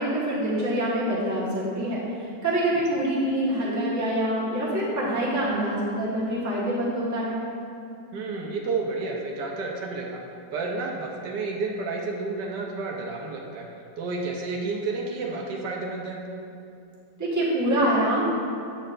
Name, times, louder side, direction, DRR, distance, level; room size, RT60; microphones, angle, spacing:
voice 1, 0.0-7.4 17.2-18.3, right 1 dB, 10° right, -8 dB, 1.1 m, -25 dB
voice 2, 8.1-10.2 10.5-13.6 14.0-16.2, right 3 dB, 75° right, 0 dB, 1.3 m, -31 dB
8.5 x 6.4 x 2.5 m, 2.5 s
omnidirectional pair, 1.9 m